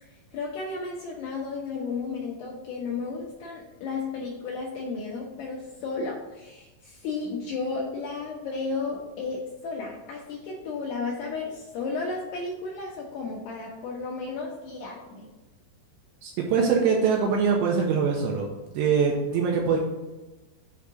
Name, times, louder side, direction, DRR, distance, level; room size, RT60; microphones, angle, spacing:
voice 1, 0.0-15.3 19.7-19.8, left 4 dB, 80° left, -2 dB, 2.4 m, -33 dB
voice 2, 16.2-18.5 18.7-19.8, right 6 dB, 85° right, 0 dB, 2.6 m, -23 dB
8.2 x 2.8 x 6.1 m, 1.1 s
omnidirectional pair, 5.6 m